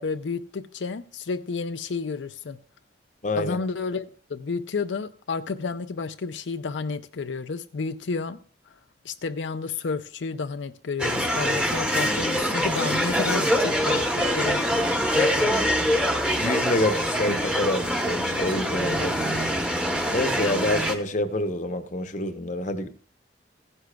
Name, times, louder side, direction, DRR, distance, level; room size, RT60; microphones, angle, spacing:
voice 1, 0.0-2.6 3.4-8.4 9.0-14.6 15.1-15.7 17.3-17.4, left 4 dB, 90° left, 0.5 m, -31 dB
voice 2, 3.2-3.6 15.5-15.6 16.3-19.6 20.1-22.9, left 1 dB, 40° left, 0.8 m, -27 dB
sound 1, 11.0-20.9, equal, 5° right, 0.9 m, -24 dB
16.0 x 9.9 x 2.3 m
head